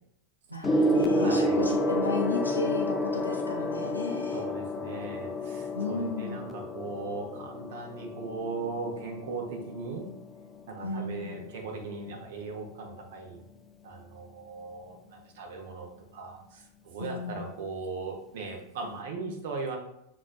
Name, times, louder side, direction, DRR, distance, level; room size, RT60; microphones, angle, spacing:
voice 1, 0.5-4.4 5.7-6.5 10.8-11.4 17.0-17.4, left 3 dB, 85° left, 0 dB, 0.6 m, -34 dB
Gong, 0.6-10.4 11.3-11.6, left 1 dB, 10° left, 0.4 m, -30 dB
voice 2, 1.0-1.6 4.3-10.1 10.7-13.4 13.8-19.8, right 3 dB, 55° right, 3 dB, 0.7 m, -38 dB
6.0 x 2.5 x 2.2 m, 0.81 s
figure-of-eight pair, 90°, 0 cm